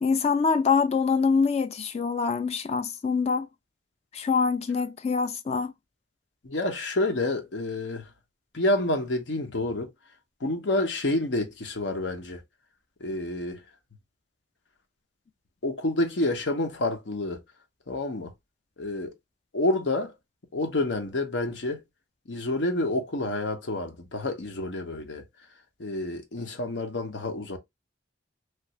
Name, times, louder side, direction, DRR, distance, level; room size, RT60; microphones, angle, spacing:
voice 1, 0.0-3.5 4.1-5.7, left 5 dB, 35° left, 0.3 m, -25 dB
voice 2, 6.4-8.0 8.5-9.9 10.4-12.4 13.0-13.6 15.6-17.4 17.9-18.3 18.8-19.1 19.5-20.1 20.5-21.8 22.3-25.2 25.8-27.6, left 2 dB, 80° left, 0.8 m, -28 dB
3.2 x 2.4 x 2.9 m
head